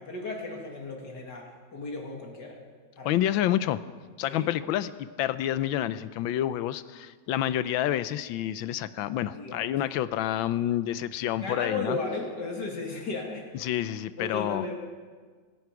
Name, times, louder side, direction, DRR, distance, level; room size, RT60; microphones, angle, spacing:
voice 1, 0.0-2.6 3.0-3.1 4.3-4.5 9.3-9.8 11.4-13.6 14.2-14.7, left 3 dB, 60° left, 0 dB, 2.9 m, -35 dB
voice 2, 3.0-3.8 4.2-12.0 13.6-14.7, left 12 dB, 85° left, 14 dB, 1.4 m, -28 dB
25.0 x 11.0 x 4.8 m, 1.5 s
omnidirectional pair, 2.1 m